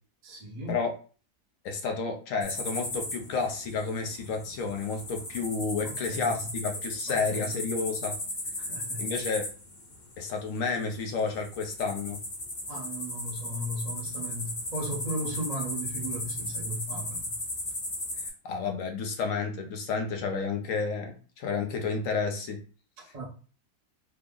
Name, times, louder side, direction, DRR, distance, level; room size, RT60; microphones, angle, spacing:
voice 1, 0.2-0.8 5.8-6.5 7.1-7.5 8.6-9.1 12.7-17.4 23.0-23.3, right 1 dB, 35° right, 0.7 m, -36 dB
voice 2, 1.6-8.2 9.0-9.4 10.2-12.2 18.4-22.6, left 4 dB, 70° left, 0.9 m, -31 dB
sound 1, 2.4-18.3, left 1 dB, 35° left, 0.8 m, -36 dB
3.3 x 2.0 x 3.6 m
omnidirectional pair, 1.7 m